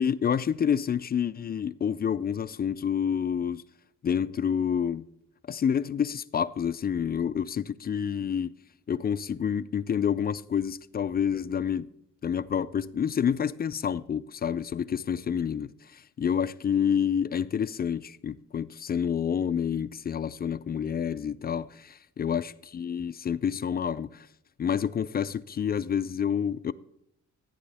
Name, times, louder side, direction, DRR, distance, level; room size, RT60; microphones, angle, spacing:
voice 1, 0.0-3.6 4.0-5.1 5.5-8.5 8.9-11.9 12.2-24.3 24.6-26.7, left 8 dB, 35° left, 0.4 m, -28 dB
13.5 x 9.6 x 3.4 m
cardioid pair, 130°, 30 cm